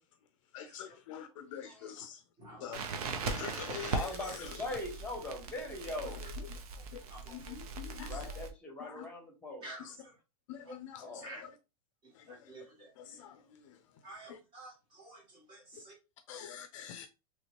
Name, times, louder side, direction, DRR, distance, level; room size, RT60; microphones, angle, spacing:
voice 1, 0.5-2.1 2.6-2.8 3.2-3.9 7.3-8.1 8.8-9.0 10.5-11.1 16.3-17.1, left 10 dB, 55° left, 0.5 m, -44 dB
voice 2, 1.6-2.0 3.9-6.2 8.1-9.7 11.0-11.3, left 1 dB, 5° left, 1.3 m, -41 dB
voice 3, 2.4-2.9 7.1-7.5 9.6-9.9 10.7-10.8 11.2-11.4 12.3-12.9 14.0-15.2 15.5-15.9, right 2 dB, 25° right, 1.3 m, -49 dB
Crackle, 2.7-8.5, right 4 dB, 70° right, 0.7 m, -40 dB
3.1 x 2.7 x 3.0 m
supercardioid pair, 150°, 20 cm